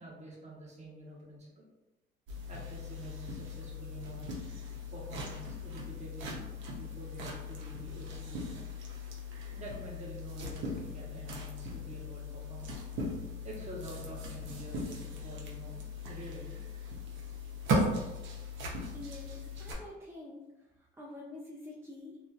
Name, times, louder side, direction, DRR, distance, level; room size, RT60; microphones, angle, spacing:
voice 1, 0.0-1.6 2.5-4.3 4.9-6.4 6.7-8.7 9.5-12.7 13.4-15.8 16.1-16.6, right 2 dB, 35° right, -4 dB, 0.9 m, -47 dB
sound 1, 2.3-19.7, left 1 dB, 70° right, 0.6 m, -38 dB
voice 2, 18.9-22.2, left 2 dB, 15° right, -4 dB, 0.4 m, -47 dB
2.5 x 2.4 x 2.3 m, 1.0 s
cardioid pair, 90°, 20 cm